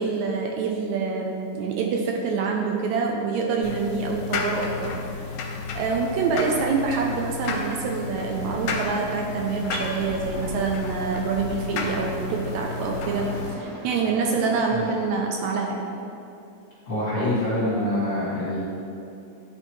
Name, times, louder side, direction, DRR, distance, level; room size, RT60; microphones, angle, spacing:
voice 1, 0.0-13.3 13.5-15.9, right 4 dB, 80° right, 1 dB, 1.6 m, -26 dB
sound 1, 3.6-13.5, left 4 dB, 80° left, 1.8 m, -32 dB
sound 2, 6.9-15.1, right 1 dB, 60° right, 1.9 m, -41 dB
voice 2, 16.9-18.6, left 1 dB, 55° left, -9 dB, 1.2 m, -25 dB
10.5 x 4.3 x 3.0 m, 2.7 s
omnidirectional pair, 3.8 m